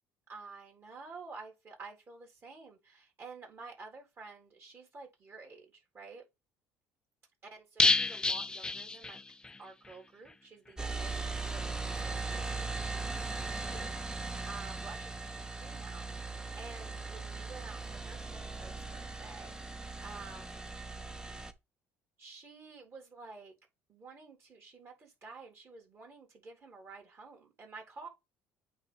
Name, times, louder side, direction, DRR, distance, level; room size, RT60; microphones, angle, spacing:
voice 1, 0.3-5.7 5.9-6.2 7.7-9.2 9.6-12.7 13.0-20.7 22.2-23.5 23.9-28.1, right 4 dB, 40° right, 3.8 m, -51 dB
sound 1, 7.8-9.6 9.9-10.0 10.3-10.4, left 3 dB, 15° left, 0.3 m, -29 dB
sound 2, 10.8-21.5, right 3 dB, 10° right, 0.7 m, -39 dB
8.7 x 3.3 x 4.2 m
supercardioid pair, 95°, 6 cm